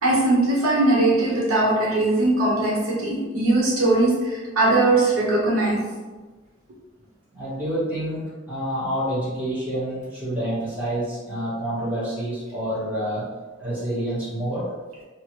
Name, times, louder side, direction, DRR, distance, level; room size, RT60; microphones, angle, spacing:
voice 1, 0.0-5.8, right 2 dB, 85° right, -5 dB, 0.9 m, -20 dB
voice 2, 7.3-13.3 13.6-14.7, right 1 dB, 10° right, -12 dB, 1.2 m, -28 dB
2.9 x 2.4 x 2.8 m, 1.3 s
head